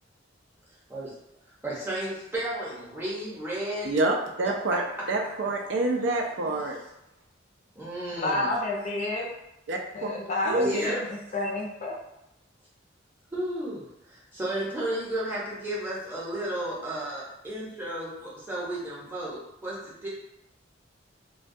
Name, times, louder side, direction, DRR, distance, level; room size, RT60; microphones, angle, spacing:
voice 1, 1.6-3.9 6.4-6.5 7.7-8.5 10.6-11.0 13.3-20.1, right 1 dB, 10° right, -7 dB, 0.7 m, -33 dB
voice 2, 3.8-6.8 9.7-10.1 10.5-10.8, right 2 dB, 65° right, 2 dB, 0.4 m, -27 dB
voice 3, 8.2-9.3 9.9-12.0, left 2 dB, 40° left, -2 dB, 0.5 m, -29 dB
2.2 x 2.2 x 2.6 m, 0.88 s
head